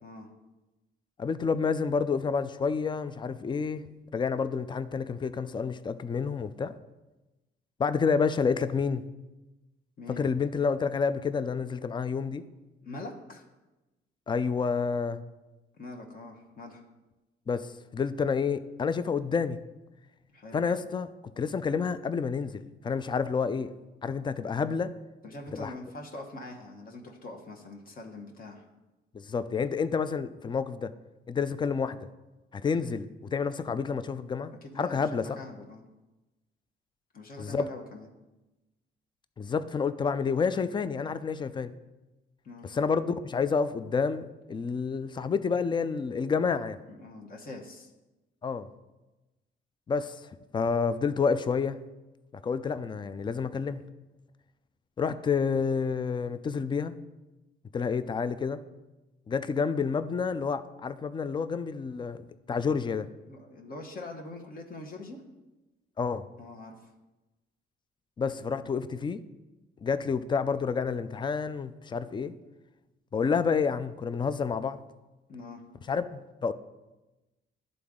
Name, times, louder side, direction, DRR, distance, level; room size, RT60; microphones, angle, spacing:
voice 1, 1.2-3.9 4.1-6.8 7.8-9.1 10.1-12.4 14.3-15.2 17.5-19.6 20.5-21.1 21.4-23.7 24.0-24.9 25.5-25.7 29.1-30.9 31.3-32.0 32.5-35.4 37.4-37.7 39.4-41.7 42.6-46.8 48.4-48.7 49.9-51.8 52.4-53.8 55.0-57.0 57.7-58.6 59.3-62.2 62.5-63.1 66.0-66.3 68.2-69.2 69.8-72.3 73.1-74.8 75.9-76.5, left 5 dB, 25° left, 13 dB, 0.4 m, -29 dB
voice 2, 12.8-13.4 15.8-16.8 20.3-20.6 25.2-28.6 34.6-35.8 37.1-38.1 42.4-42.7 46.9-47.9 63.3-65.2 66.4-66.9 75.3-75.6, left 2 dB, 45° left, 1 dB, 1.1 m, -43 dB
11.0 x 3.9 x 3.6 m, 1.1 s
cardioid pair, 90°, 20 cm